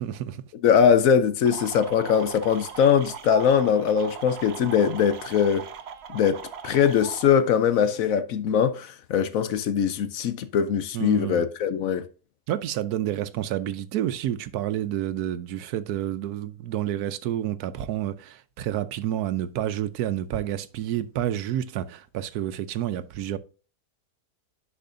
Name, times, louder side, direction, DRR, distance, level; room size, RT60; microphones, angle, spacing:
voice 1, 0.0-0.4 10.9-11.5 12.5-23.4, right 11 dB, 80° right, 1.1 m, -29 dB
voice 2, 0.6-5.7 6.1-12.1, left 7 dB, 70° left, 1.0 m, -22 dB
sound 1, 1.4-7.3, right 8 dB, 60° right, 0.7 m, -39 dB
10.5 x 5.0 x 2.6 m
omnidirectional pair, 1.6 m